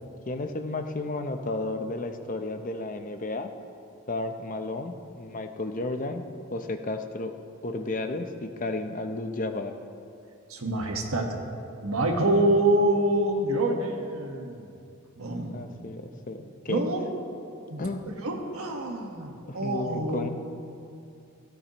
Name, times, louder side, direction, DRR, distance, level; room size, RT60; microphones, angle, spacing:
voice 1, 0.3-3.5 4.1-6.2 6.5-7.3 7.6-9.7 15.5-16.8 17.8-18.1 19.5-20.3, left 2 dB, 35° left, 6 dB, 0.7 m, -32 dB
voice 2, 10.5-11.4 11.8-14.7 15.2-15.6 16.7-17.1 17.7-17.9 18.2-20.3, right 1 dB, 75° right, 2 dB, 1.4 m, -26 dB
17.0 x 13.5 x 3.0 m, 2.5 s
head